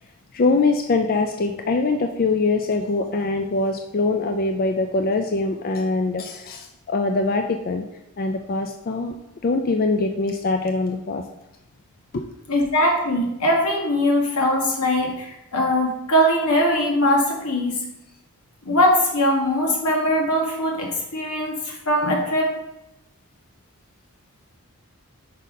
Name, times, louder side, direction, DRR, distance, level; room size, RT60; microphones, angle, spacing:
voice 1, 0.3-7.8 8.2-9.2 9.4-11.2 12.1-12.3, left 3 dB, 40° left, 4 dB, 0.4 m, -23 dB
voice 2, 12.5-17.7 18.6-22.6, equal, 85° left, 0 dB, 1.5 m, -21 dB
5.4 x 4.1 x 5.0 m, 0.88 s
head